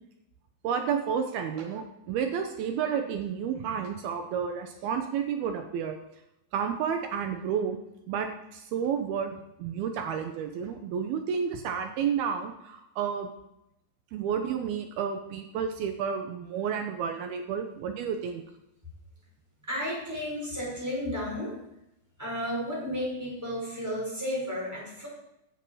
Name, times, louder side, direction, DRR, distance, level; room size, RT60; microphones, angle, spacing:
voice 1, 0.6-6.0 6.5-7.8 8.1-13.3 14.1-18.4, right 7 dB, 75° right, 6 dB, 2.5 m, -31 dB
voice 2, 19.7-21.5 22.2-25.1, equal, 5° right, -4 dB, 5.2 m, -33 dB
15.0 x 10.0 x 4.8 m, 0.85 s
omnidirectional pair, 5.0 m